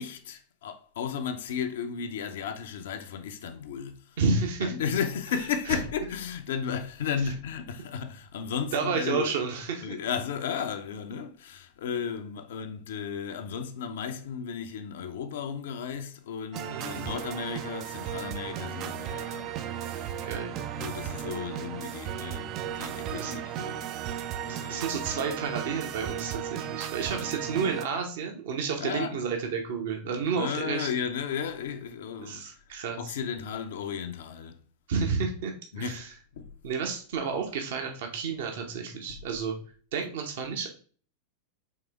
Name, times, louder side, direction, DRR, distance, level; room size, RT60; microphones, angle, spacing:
voice 1, 0.0-4.2 4.6-9.3 9.8-19.5 19.8-20.2 20.8-23.9 24.4-24.9 25.6-25.9 28.8-29.2 30.3-32.4 33.0-34.6 35.7-36.1 36.3-36.5 39.1-39.2, left 7 dB, 60° left, 0.5 m, -34 dB
voice 2, 4.2-4.7 8.7-9.9 16.7-17.0 20.2-20.6 23.2-23.4 24.5-30.9 32.2-33.2 34.9-36.1 36.6-39.6 39.9-40.7, right 5 dB, 55° right, 0.8 m, -31 dB
sound 1, 16.5-27.8, right 10 dB, 35° right, 0.4 m, -35 dB
4.7 x 3.4 x 3.3 m
figure-of-eight pair, 90°, 0 cm